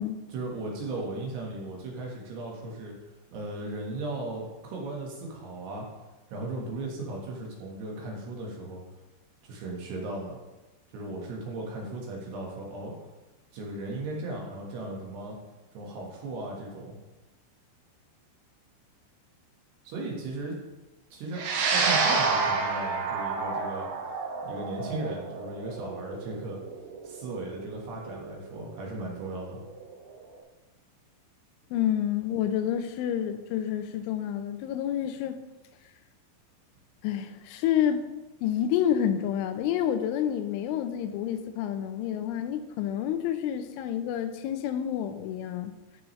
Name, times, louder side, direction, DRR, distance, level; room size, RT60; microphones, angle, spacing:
voice 1, 0.3-2.9 3.3-5.9 6.3-8.8 9.4-10.4 10.9-12.9 13.5-15.4 15.7-17.0 19.8-20.6 21.1-21.4 21.7-23.9 24.4-26.6 27.0-29.6, right 2 dB, 65° right, -1 dB, 3.2 m, -36 dB
sound 1, 21.4-29.9, right 4 dB, 85° right, 3.7 m, -29 dB
voice 2, 31.7-35.4 37.0-38.0 38.4-45.7, left 10 dB, 85° left, 9 dB, 3.0 m, -29 dB
13.5 x 7.0 x 3.2 m, 1.1 s
omnidirectional pair, 5.5 m